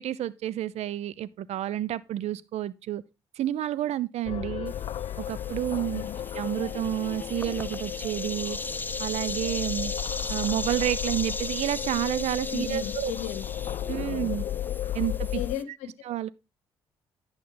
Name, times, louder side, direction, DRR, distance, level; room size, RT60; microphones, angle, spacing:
voice 1, 0.0-3.0 3.4-4.7 5.2-6.0 6.3-8.6 9.0-9.9 10.3-13.1 13.9-14.4 14.9-15.4 16.1-16.3, right 12 dB, 65° right, 0.6 m, -30 dB
sound 1, 4.3-15.6, left 11 dB, 55° left, 0.4 m, -34 dB
sound 2, 4.7-15.6, left 2 dB, 15° left, 0.8 m, -37 dB
voice 2, 12.5-13.4 13.9-14.3 15.3-15.9, left 10 dB, 80° left, 0.8 m, -35 dB
11.0 x 6.1 x 3.9 m
hypercardioid pair, 50°, 12 cm